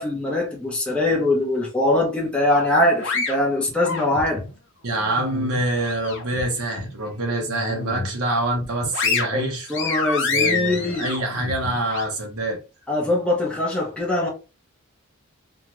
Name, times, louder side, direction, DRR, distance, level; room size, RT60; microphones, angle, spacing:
voice 1, 0.0-4.4 9.3-11.1 12.9-14.3, left 1 dB, 5° left, 0.7 m, -22 dB
sound 1, 2.5-4.5 4.9-6.4 6.8-6.9 7.4-8.2 8.6-12.0, left 4 dB, 55° left, 0.8 m, -28 dB
voice 2, 4.8-9.7 10.3-12.6, right 1 dB, 75° right, 0.9 m, -25 dB
2.7 x 2.4 x 3.0 m
head